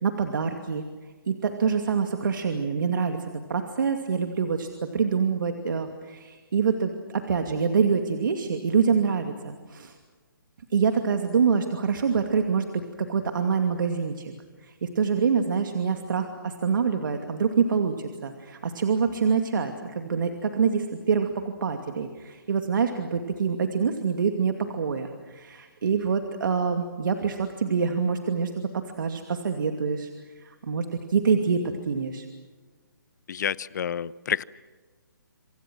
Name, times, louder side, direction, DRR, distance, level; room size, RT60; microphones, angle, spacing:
voice 1, 0.0-0.8 1.3-3.2 3.5-9.9 10.7-12.8 13.1-14.3 14.6-21.3 21.6-30.1 30.4-32.2, right 6 dB, 65° right, 5 dB, 2.5 m, -26 dB
voice 2, 33.3-34.4, left 8 dB, 55° left, 19 dB, 0.9 m, -29 dB
27.5 x 27.0 x 6.3 m, 1.4 s
hypercardioid pair, 155°, 12 cm